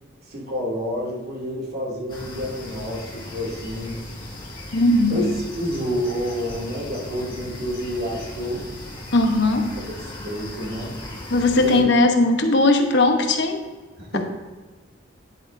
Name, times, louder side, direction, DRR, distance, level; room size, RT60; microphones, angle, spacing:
voice 1, 0.2-4.0 4.7-5.2 5.5-8.7 9.9-11.0 11.6-11.8 14.0-14.2, equal, 55° right, -4 dB, 2.5 m, -29 dB
sound 1, 2.1-11.8, left 1 dB, 25° left, 1.8 m, -37 dB
voice 2, 4.7-5.2 9.1-9.7 11.3-13.6, left 2 dB, 65° left, 4 dB, 1.0 m, -18 dB
10.5 x 8.4 x 2.6 m, 1.3 s
head